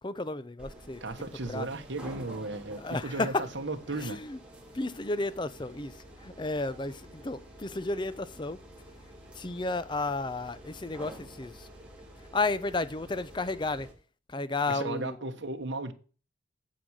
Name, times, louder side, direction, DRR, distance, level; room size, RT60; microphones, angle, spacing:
voice 1, 0.0-1.0 1.5-1.7 2.8-3.5 4.0-4.4 4.7-8.6 9.3-11.7 12.3-13.9 14.3-15.2, left 3 dB, 25° left, 0.5 m, -32 dB
sound 1, 0.6-13.9, right 1 dB, 5° right, 2.6 m, -49 dB
voice 2, 1.0-4.2 14.7-15.9, right 2 dB, 65° right, 1.2 m, -35 dB
9.0 x 7.7 x 6.4 m
head